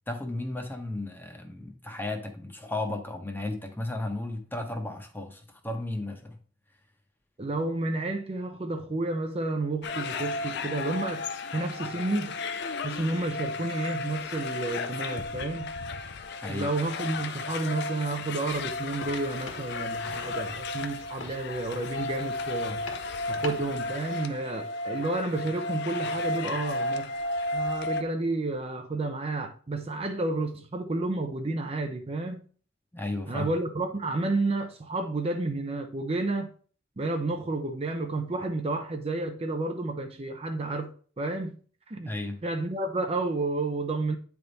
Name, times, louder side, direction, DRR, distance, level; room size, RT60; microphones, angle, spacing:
voice 1, 0.1-6.4 16.4-16.7 32.9-33.5 42.1-42.4, left 2 dB, 10° left, 0.9 m, -34 dB
voice 2, 7.4-11.3 11.5-12.4 12.8-15.7 16.5-22.8 23.3-27.1 27.5-32.4 33.3-36.5 37.0-40.9 41.2-41.6 41.9-42.1 42.4-44.2, right 2 dB, 30° right, 0.6 m, -31 dB
sound 1, 9.8-28.0, left 3 dB, 60° left, 0.5 m, -34 dB
sound 2, 18.5-23.8, left 3 dB, 80° left, 1.5 m, -46 dB
9.1 x 3.5 x 4.0 m
head